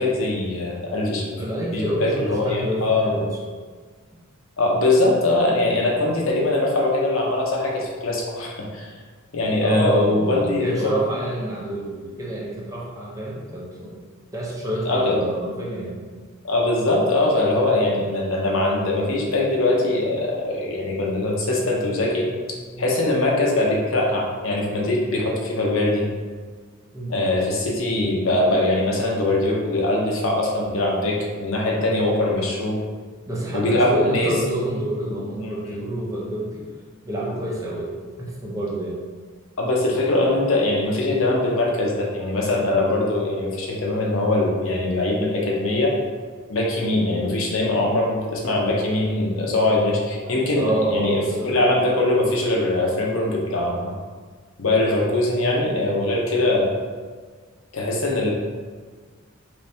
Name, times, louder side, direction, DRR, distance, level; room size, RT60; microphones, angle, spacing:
voice 1, 0.0-1.4 1.7-3.1 4.6-8.9 9.3-11.0 14.9-15.2 16.4-22.3 22.8-26.1 27.1-32.8 33.5-34.4 35.4-35.8 39.6-45.9 46.5-53.9 54.6-56.7 57.7-58.3, left 2 dB, 70° left, -2 dB, 0.7 m, -22 dB
voice 2, 1.4-3.4 9.6-14.0 14.3-16.0 22.7-22.9 26.9-27.2 31.8-32.0 33.3-36.7 37.0-37.9 38.2-39.0 42.2-42.4 47.2-47.3 50.2-51.6, right 1 dB, 15° right, -5 dB, 0.6 m, -28 dB
3.4 x 3.2 x 2.7 m, 1.5 s
head